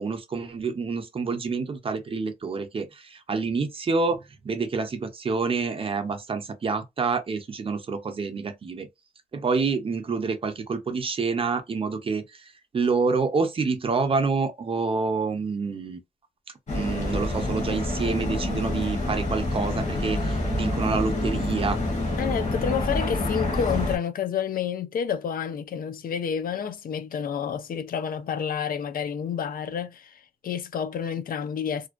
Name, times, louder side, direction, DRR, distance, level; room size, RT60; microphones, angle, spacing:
voice 1, 0.0-4.2 4.4-8.9 9.3-12.2 12.7-16.0 16.7-21.8, right 4 dB, 35° right, 0.5 m, -27 dB
sound 1, 16.7-24.0, left 2 dB, 50° left, 0.9 m, -27 dB
voice 2, 22.2-31.9, left 8 dB, 70° left, 0.4 m, -29 dB
2.5 x 2.2 x 2.4 m
wide cardioid pair, 175°, 15 cm